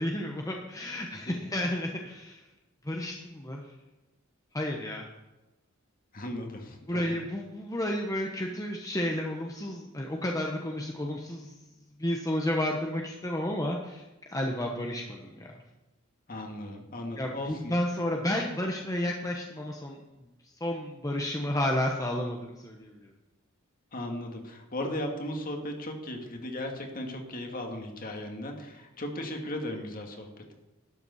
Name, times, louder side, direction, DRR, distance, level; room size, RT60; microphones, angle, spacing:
voice 1, 0.0-2.4 2.8-3.6 4.5-5.1 6.9-11.5 12.0-15.5 17.2-20.0 20.6-23.1, left 1 dB, 15° left, 1 dB, 1.0 m, -31 dB
voice 2, 6.1-7.2 16.3-17.7 23.9-30.5, left 1 dB, 45° left, 3 dB, 2.1 m, -37 dB
12.0 x 7.0 x 7.1 m, 1.0 s
head